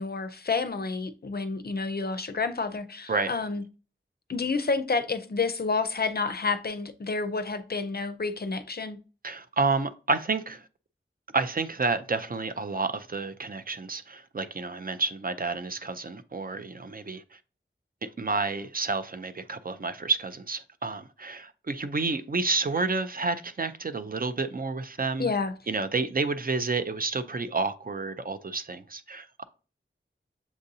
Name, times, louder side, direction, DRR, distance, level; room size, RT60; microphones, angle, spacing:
voice 1, 0.0-3.6 4.3-9.0 25.2-25.5, left 4 dB, 50° left, 0.4 m, -29 dB
voice 2, 9.2-10.6 11.3-17.4 18.0-25.3 25.7-29.4, right 3 dB, 45° right, 0.4 m, -30 dB
7.1 x 2.6 x 2.7 m
wide cardioid pair, 50°, 21 cm